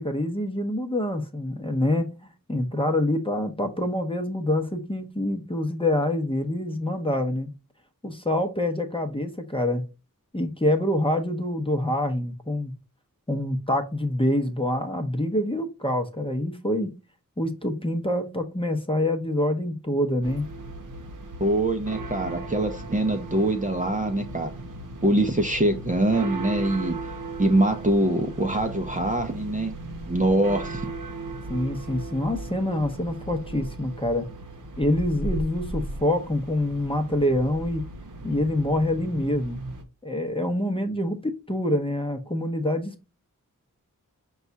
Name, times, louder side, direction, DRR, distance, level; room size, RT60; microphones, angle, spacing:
voice 1, 0.0-2.1 2.5-7.5 8.0-9.8 10.3-12.7 13.3-16.9 17.4-20.5 31.5-34.3 34.8-37.8 38.2-39.6 40.0-43.1, left 1 dB, 15° left, 0.7 m, -26 dB
sound 1, 20.2-39.8, right 2 dB, 65° right, 0.8 m, -37 dB
voice 2, 21.4-24.5 25.0-27.0 27.4-29.8 30.1-30.9, right 1 dB, 25° right, 0.5 m, -23 dB
5.3 x 2.3 x 3.9 m
wide cardioid pair, 70°, 35 cm